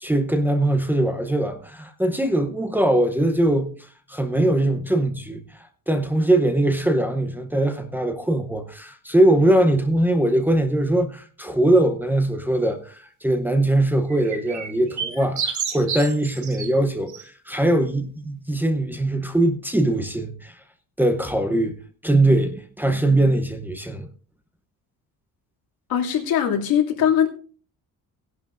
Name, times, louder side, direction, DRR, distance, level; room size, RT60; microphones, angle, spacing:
voice 1, 0.0-3.7 4.1-5.4 5.9-20.5 21.0-21.8 22.0-24.1, right 1 dB, 5° right, 0.8 m, -21 dB
sound 1, 14.1-16.7 17.1-17.2, right 6 dB, 55° right, 2.3 m, -30 dB
voice 2, 25.9-27.3, left 9 dB, 90° left, 2.5 m, -20 dB
18.0 x 11.0 x 2.5 m
cardioid pair, 180°, 35 cm